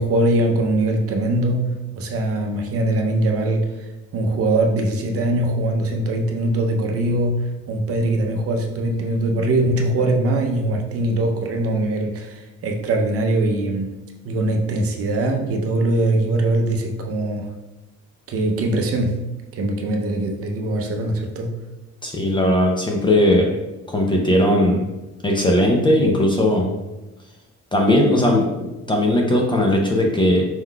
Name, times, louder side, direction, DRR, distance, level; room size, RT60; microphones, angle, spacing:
voice 1, 0.0-17.5 18.3-19.2 19.5-21.5, right 1 dB, 50° right, 3 dB, 0.6 m, -22 dB
voice 2, 22.0-23.5 23.9-24.8 25.2-26.7 27.7-30.4, left 1 dB, 15° left, 0 dB, 0.4 m, -18 dB
4.6 x 3.8 x 2.2 m, 1.0 s
cardioid pair, 160°, 30 cm